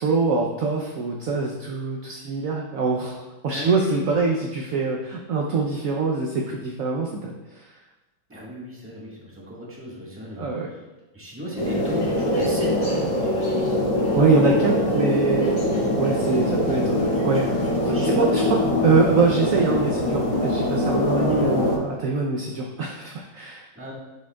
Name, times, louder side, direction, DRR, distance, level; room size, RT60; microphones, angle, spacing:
voice 1, 0.0-3.1 3.4-7.3 10.4-10.7 14.1-15.5 16.0-17.4 18.0-23.7, right 4 dB, 65° right, 0 dB, 0.8 m, -24 dB
voice 2, 3.5-4.2 8.3-10.5 11.1-13.7 16.7-16.8 17.1-18.3 21.3-21.4 23.7-23.9, equal, 10° right, -5 dB, 1.3 m, -34 dB
sound 1, 11.6-21.8, left 1 dB, 75° left, 2.7 m, -23 dB
10.5 x 4.9 x 2.3 m, 1.1 s
omnidirectional pair, 2.0 m